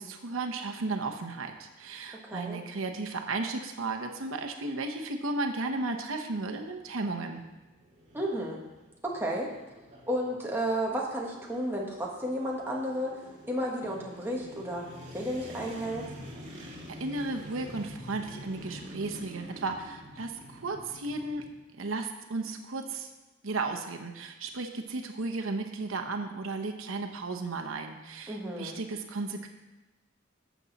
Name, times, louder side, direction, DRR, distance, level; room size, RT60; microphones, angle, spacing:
voice 1, 0.0-7.4 16.6-21.5 21.8-23.1 23.4-29.5, right 3 dB, 90° right, 4 dB, 0.9 m, -34 dB
voice 2, 2.2-2.6 8.1-8.6 9.0-9.5 10.1-13.2 13.5-14.9 15.1-16.1 28.3-28.8, equal, 10° right, -3 dB, 1.5 m, -32 dB
sound 1, 6.3-21.5, equal, 35° right, 2.1 m, -47 dB
12.0 x 7.2 x 4.1 m, 1.1 s
head